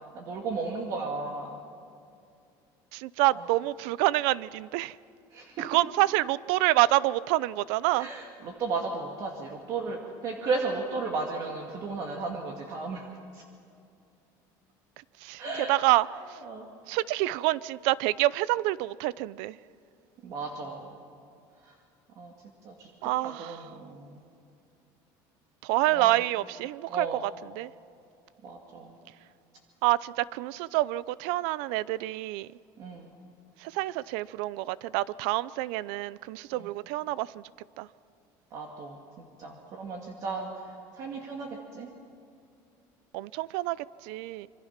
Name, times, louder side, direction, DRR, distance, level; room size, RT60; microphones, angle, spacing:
voice 1, 0.1-1.6 5.3-5.6 8.0-13.1 13.3-13.4 15.4-15.7 16.4-16.7 20.2-21.0 21.6-21.7 22.2-22.3 22.6-22.9 23.2-24.2 25.9-26.2 26.9-27.2 28.4-28.9 32.8-33.1 38.5-41.9, right 3 dB, 40° right, 1 dB, 2.1 m, -35 dB
voice 2, 2.9-5.0 5.6-8.1 15.2-15.4 15.7-16.4 16.9-19.6 23.0-23.7 25.6-27.7 29.8-32.5 33.6-37.4 37.8-37.9 43.1-44.5, right 17 dB, 70° right, 20 dB, 0.6 m, -27 dB
27.0 x 24.5 x 5.9 m, 2.5 s
cardioid pair, 180°, 9 cm